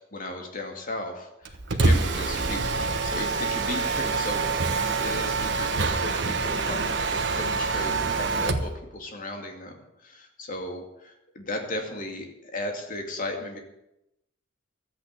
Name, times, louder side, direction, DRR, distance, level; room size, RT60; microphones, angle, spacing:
voice 1, 0.1-13.6, left 1 dB, 45° left, 3 dB, 2.4 m, -36 dB
Mechanisms, 1.5-8.7, right 3 dB, 60° right, 1.3 m, -26 dB
13.0 x 8.9 x 8.3 m, 0.86 s
head